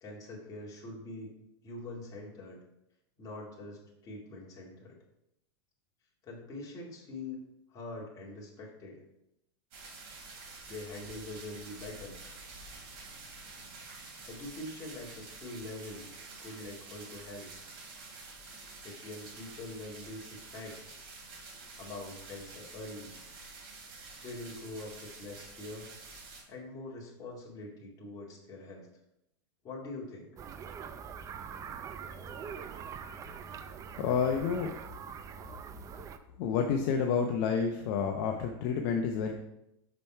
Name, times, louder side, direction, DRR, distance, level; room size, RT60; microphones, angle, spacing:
voice 1, 0.0-1.3 1.6-2.6 3.2-5.0 6.2-9.0 10.7-12.2 14.2-16.1 16.4-17.5 18.8-20.9 21.8-23.1 24.2-25.9 26.5-28.9 29.6-30.4, left 2 dB, 25° left, -3 dB, 2.2 m, -44 dB
sound 1, 9.7-26.4, right 3 dB, 55° right, 2.7 m, -48 dB
sound 2, 30.4-36.2, right 7 dB, 25° right, 0.5 m, -43 dB
voice 2, 34.0-34.7 36.4-39.3, left 6 dB, 50° left, 3 dB, 0.7 m, -29 dB
5.9 x 5.2 x 4.5 m, 0.83 s
supercardioid pair, 135°, 13 cm